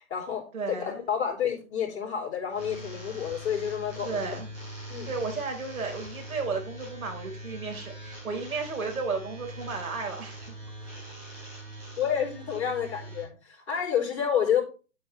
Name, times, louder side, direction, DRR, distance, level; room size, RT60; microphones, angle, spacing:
voice 1, 0.0-4.3 4.9-5.1 12.0-14.6, left 8 dB, 50° left, 0 dB, 4.0 m, -29 dB
voice 2, 0.5-1.1 4.0-4.5 5.1-10.6, right 4 dB, 90° right, 3 dB, 4.0 m, -33 dB
sound 1, 2.5-13.2, equal, 20° right, 4.2 m, -42 dB
10.0 x 8.5 x 3.1 m, 0.34 s
hypercardioid pair, 175°, 41 cm